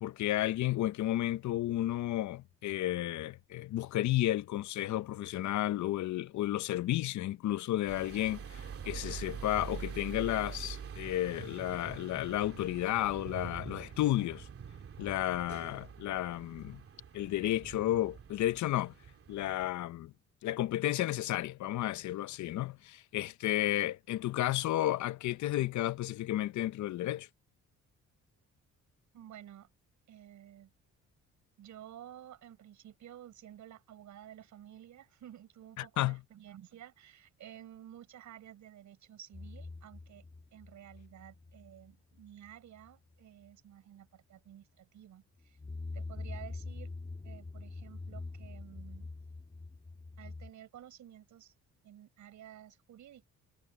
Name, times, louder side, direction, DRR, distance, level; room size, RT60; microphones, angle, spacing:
voice 1, 0.0-14.5 15.0-16.8 17.1-18.9 19.3-20.1 20.4-27.3 35.8-36.2, left 14 dB, 70° left, 0.7 m, -32 dB
sound 1, 7.9-19.7, right 7 dB, 50° right, 2.6 m, -45 dB
voice 2, 29.1-29.7 30.1-30.7 31.6-40.2 40.5-45.6 45.9-46.9 47.2-49.1 50.2-51.5 51.8-53.3, right 11 dB, 70° right, 5.2 m, -52 dB
sound 2, 39.3-41.9 42.2-42.5 42.8-42.9 45.4-50.5, left 3 dB, 20° left, 1.5 m, -44 dB
cardioid pair, 90°, 30 cm